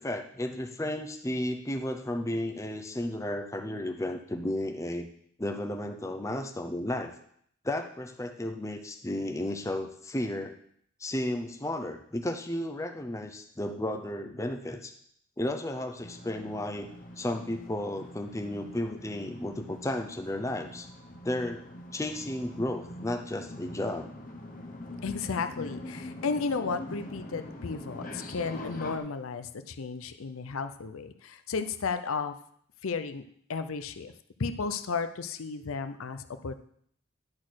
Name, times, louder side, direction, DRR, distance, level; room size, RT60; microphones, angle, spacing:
voice 1, 0.0-5.1 5.4-7.1 7.6-10.6 11.0-14.9 15.4-16.9 17.2-20.9 21.2-21.6 21.9-24.1, left 1 dB, 15° left, 5 dB, 0.6 m, -33 dB
sound 1, 16.0-29.0, left 1 dB, 40° left, 0.9 m, -43 dB
voice 2, 25.0-32.3 32.8-33.2 33.5-34.1 34.4-36.6, left 5 dB, 85° left, 9 dB, 0.6 m, -33 dB
10.5 x 4.3 x 6.2 m, 0.65 s
head